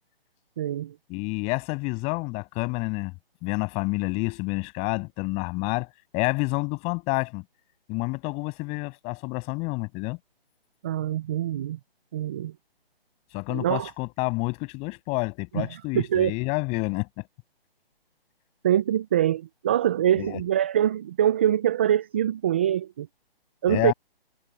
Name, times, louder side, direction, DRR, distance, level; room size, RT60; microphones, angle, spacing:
voice 1, 0.6-1.0 10.8-11.8 12.1-12.5 13.5-13.9 15.5-16.3 18.6-23.1 23.6-23.9, right 11 dB, 10° right, 0.5 m, -24 dB
voice 2, 1.1-3.1 3.4-7.4 7.9-10.2 13.3-17.3 20.2-20.4 23.7-23.9, left 28 dB, 20° left, 7.7 m, -29 dB
figure-of-eight pair, 145°, 30 cm